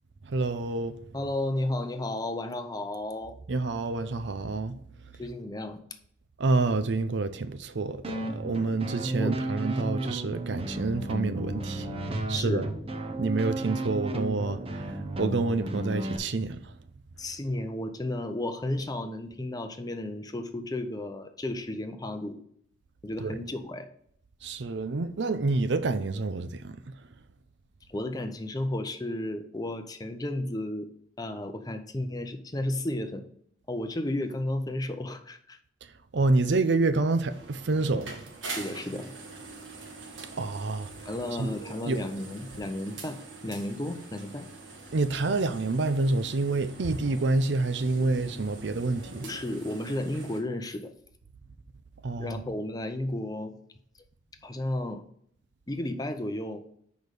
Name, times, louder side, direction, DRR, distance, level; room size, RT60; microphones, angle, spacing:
voice 1, 0.3-1.0 3.5-4.7 6.4-12.7 13.1-16.6 23.2-23.4 24.4-26.9 36.1-38.2 40.4-40.9 41.4-41.5 41.8-42.0 44.9-49.3 52.0-52.4, right 3 dB, 65° right, 0.6 m, -28 dB
voice 2, 1.1-3.4 5.2-5.8 9.2-9.4 12.3-12.7 17.2-22.4 23.0-23.9 27.9-30.9 31.2-33.3 33.7-35.6 38.4-39.0 41.0-44.5 48.0-48.5 49.2-50.9 52.2-53.5 54.4-55.0 55.7-56.6, left 1 dB, 20° left, 0.6 m, -33 dB
sound 1, 8.0-16.2, right 1 dB, 30° right, 0.9 m, -33 dB
sound 2, 37.3-50.4, right 3 dB, 85° right, 1.7 m, -43 dB
6.3 x 5.1 x 4.9 m
head